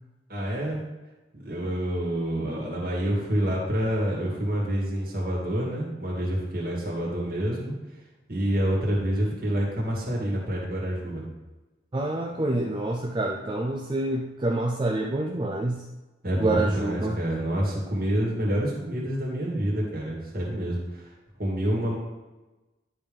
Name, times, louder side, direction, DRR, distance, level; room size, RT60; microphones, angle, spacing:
voice 1, 0.3-0.8 1.3-7.7 8.3-11.2 16.2-21.1 21.4-21.9, equal, 45° right, -3 dB, 2.2 m, -27 dB
voice 2, 11.9-15.8 16.3-17.2, right 2 dB, 25° right, 0 dB, 0.4 m, -27 dB
10.0 x 3.5 x 5.3 m, 1.1 s
head